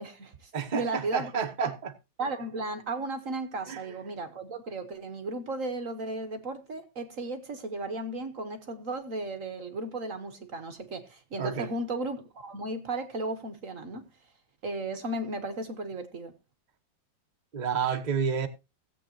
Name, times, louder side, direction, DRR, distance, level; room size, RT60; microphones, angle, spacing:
voice 1, 0.0-1.3 1.6-1.7 2.2-14.0 14.6-16.3, right 2 dB, 50° right, 1.2 m, -35 dB
voice 2, 0.5-1.9 3.7-4.0 11.4-11.7 17.5-18.5, right 6 dB, 30° right, 0.9 m, -30 dB
17.0 x 8.3 x 2.8 m
omnidirectional pair, 2.1 m